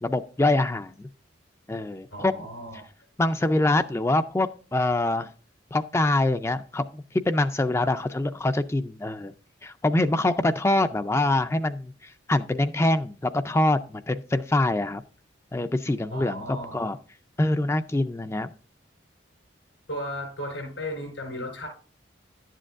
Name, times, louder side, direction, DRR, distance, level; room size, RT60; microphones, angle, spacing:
voice 1, 0.0-0.9 1.7-2.3 3.2-5.3 5.7-9.3 9.6-11.9 12.3-15.0 15.5-17.0 17.4-18.5, left 2 dB, 15° left, 10 dB, 0.3 m, -24 dB
voice 2, 2.1-2.8 7.8-7.9 16.1-16.9 19.9-21.7, equal, 90° left, -1 dB, 4.8 m, -35 dB
11.5 x 7.5 x 2.5 m, 0.39 s
head